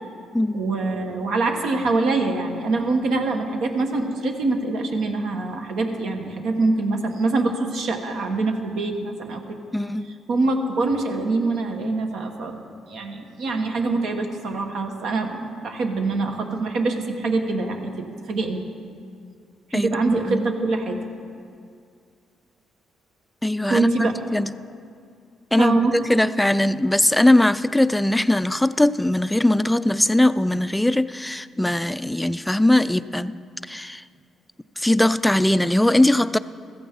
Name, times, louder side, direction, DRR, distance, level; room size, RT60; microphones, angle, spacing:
voice 1, 0.5-9.6 10.3-18.6 19.7-21.0 23.7-24.1 25.6-25.9, right 3 dB, 75° right, 4 dB, 1.3 m, -24 dB
voice 2, 9.7-10.1 19.7-20.0 20.3-20.5 23.4-24.5 25.5-25.8 26.1-33.4 33.6-34.0 34.8-36.4, left 1 dB, 5° left, 14 dB, 0.3 m, -20 dB
15.0 x 14.5 x 3.7 m, 2.3 s
cardioid pair, 90°, 0 cm